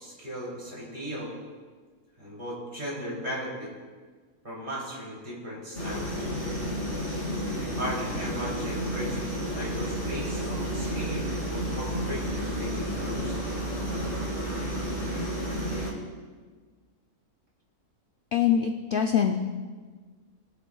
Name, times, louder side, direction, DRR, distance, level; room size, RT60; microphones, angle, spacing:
voice 1, 0.0-1.3 2.2-3.7 4.4-6.2 7.6-9.2 9.5-13.4, equal, 30° right, -6 dB, 3.4 m, -37 dB
sound 1, 5.7-15.9, equal, 40° left, 2.8 m, -31 dB
voice 2, 18.3-19.3, left 8 dB, 60° left, 3 dB, 0.5 m, -23 dB
19.5 x 8.0 x 2.4 m, 1.5 s
omnidirectional pair, 1.6 m